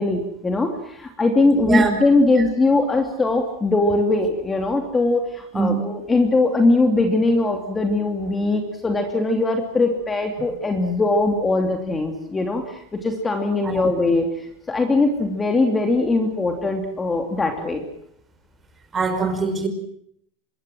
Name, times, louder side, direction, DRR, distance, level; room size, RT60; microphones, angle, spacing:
voice 1, 0.0-17.8, left 2 dB, 15° left, 4 dB, 2.8 m, -21 dB
voice 2, 1.6-2.0 2.4-2.5 5.5-5.8 13.6-13.9 18.9-19.7, right 4 dB, 20° right, 7 dB, 5.1 m, -22 dB
25.5 x 21.0 x 7.7 m, 0.70 s
supercardioid pair, 140°, 0 cm